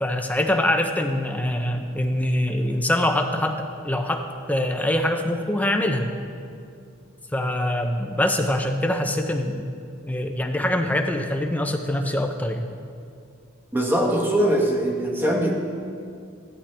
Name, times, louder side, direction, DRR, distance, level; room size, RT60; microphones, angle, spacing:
voice 1, 0.0-6.1 7.3-9.7 10.0-12.7, left 1 dB, 10° left, 4 dB, 0.6 m, -24 dB
voice 2, 13.7-15.5, right 1 dB, 10° right, 0 dB, 1.4 m, -21 dB
15.5 x 11.5 x 3.4 m, 2.4 s
head